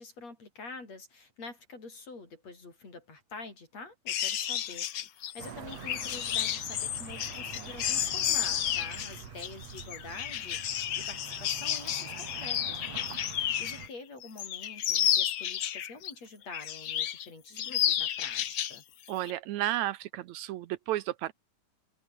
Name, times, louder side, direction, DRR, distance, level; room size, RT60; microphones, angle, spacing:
voice 1, 0.0-18.8, left 3 dB, 60° left, 7.8 m, -47 dB
sound 1, 4.1-13.9 14.2-16.1 16.5-17.3 17.6-18.8 19.1-19.3, left 10 dB, 80° left, 0.9 m, -31 dB
sound 2, 5.4-13.9, right 7 dB, 60° right, 3.4 m, -46 dB
voice 2, 19.1-21.3, right 14 dB, 80° right, 2.0 m, -32 dB
omnidirectional pair, 3.4 m